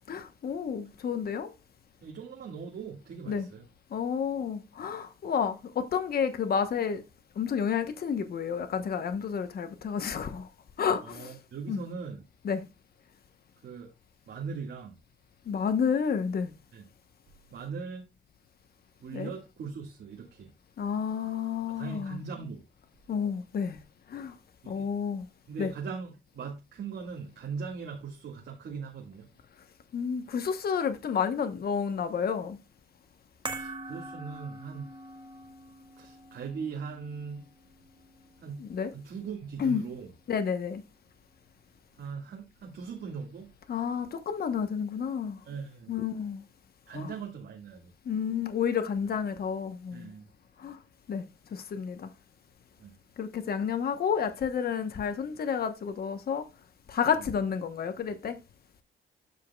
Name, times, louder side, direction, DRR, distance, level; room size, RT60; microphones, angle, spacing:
voice 1, 0.1-1.5 3.3-3.5 3.9-7.0 7.4-10.5 10.8-11.3 11.7-11.8 12.4-12.6 15.5-16.5 19.1-19.3 20.8-22.2 23.1-23.8 24.1-24.3 24.7-25.3 25.6-25.7 29.9-32.6 38.6-38.9 39.6-39.8 40.3-40.8 43.7-45.4 45.9-46.4 46.9-47.1 48.1-50.1 50.6-50.8 51.1-52.1 53.2-56.5 56.9-58.4, left 7 dB, 50° left, 1.0 m, -30 dB
voice 2, 2.0-3.7 11.0-12.2 13.6-13.9 14.3-14.9 16.7-16.8 17.5-18.0 19.0-20.5 21.7-22.6 24.6-24.9 25.5-29.3 33.5-34.9 36.0-37.5 38.4-38.7 38.9-40.1 42.0-43.5 45.4-45.9 46.9-47.9 49.9-50.3 52.8-53.0 57.1-57.3, right 5 dB, 65° right, 1.9 m, -40 dB
sound 1, 33.5-39.9 40.1-40.3, right 2 dB, 25° right, 1.5 m, -44 dB
12.5 x 5.0 x 2.3 m
cardioid pair, 90°, 20 cm